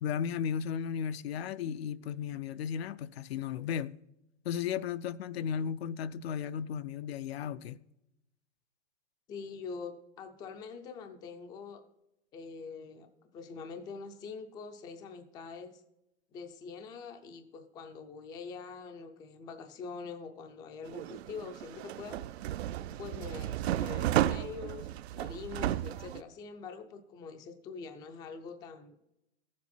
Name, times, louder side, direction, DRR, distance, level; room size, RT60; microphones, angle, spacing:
voice 1, 0.0-4.0 4.4-7.8, left 8 dB, 65° left, 0.5 m, -35 dB
voice 2, 9.3-11.8 12.3-15.8 16.3-22.2 23.0-24.9 25.2-29.0, left 5 dB, 10° left, 0.4 m, -44 dB
sound 1, 20.9-26.2, right 13 dB, 70° right, 0.5 m, -33 dB
14.0 x 7.5 x 4.2 m
supercardioid pair, 155°, 34 cm